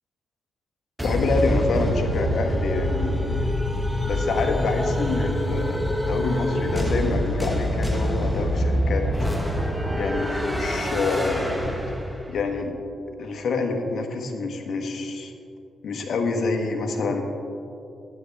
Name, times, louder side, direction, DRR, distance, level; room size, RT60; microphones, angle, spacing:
voice 1, 1.0-3.5 4.1-9.0 9.9-11.4 12.3-12.7 13.2-15.3 15.8-17.2, left 3 dB, 65° left, 4 dB, 1.3 m, -27 dB
sound 1, 1.0-12.4, equal, ahead, 1.5 m, -25 dB
12.5 x 9.7 x 3.5 m, 2.7 s
cardioid pair, 65°, 0 cm